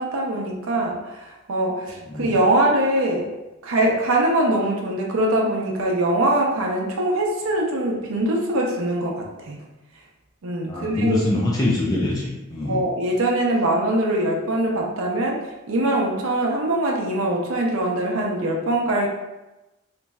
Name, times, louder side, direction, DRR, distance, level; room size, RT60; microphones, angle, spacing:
voice 1, 0.0-3.3 3.6-9.6 10.4-11.2 12.6-19.1, right 1 dB, 80° right, -1 dB, 0.5 m, -22 dB
voice 2, 10.7-12.8, left 1 dB, 20° left, -5 dB, 0.3 m, -24 dB
3.0 x 2.6 x 2.2 m, 1.0 s
head